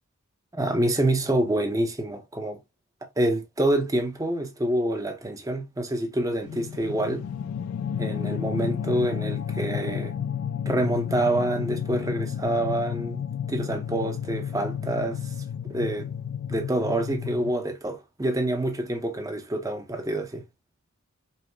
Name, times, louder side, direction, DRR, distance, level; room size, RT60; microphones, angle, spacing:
voice 1, 0.5-2.6 3.2-7.2 8.0-10.1 10.7-13.2 13.5-15.3 15.7-16.1 16.5-20.4, right 1 dB, 15° right, 0.6 m, -27 dB
sound 1, 6.4-17.5, left 8 dB, 75° left, 0.3 m, -32 dB
5.4 x 2.0 x 3.0 m
head